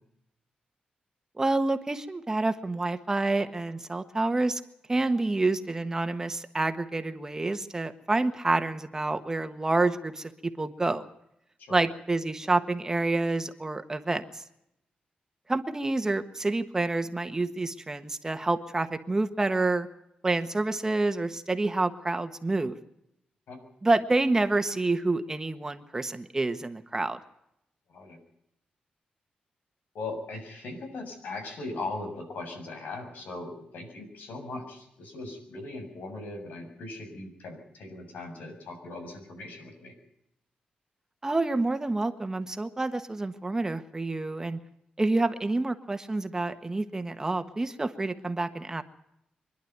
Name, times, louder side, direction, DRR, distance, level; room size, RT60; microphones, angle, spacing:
voice 1, 1.4-4.6 4.9-11.1 11.7-14.4 15.5-19.9 20.2-22.8 23.8-27.2 41.2-44.6 45.0-48.8, right 2 dB, 20° right, 8 dB, 1.4 m, -28 dB
voice 2, 29.9-39.9, left 2 dB, 90° left, 4 dB, 6.9 m, -39 dB
25.5 x 11.5 x 9.4 m, 0.80 s
wide cardioid pair, 115°, 3 cm